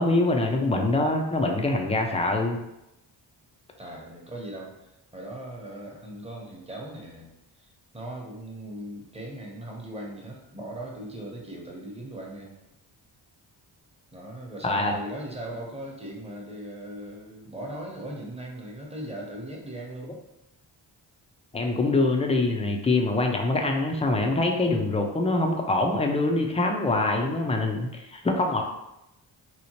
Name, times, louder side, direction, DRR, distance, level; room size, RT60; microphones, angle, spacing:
voice 1, 0.0-2.6 14.6-14.9 21.5-28.6, left 2 dB, 15° left, 2 dB, 0.4 m, -24 dB
voice 2, 3.8-7.3 7.6-12.6 14.1-20.2, right 1 dB, 15° right, -2 dB, 0.8 m, -39 dB
2.9 x 2.0 x 2.9 m, 0.90 s
cardioid pair, 50°, 47 cm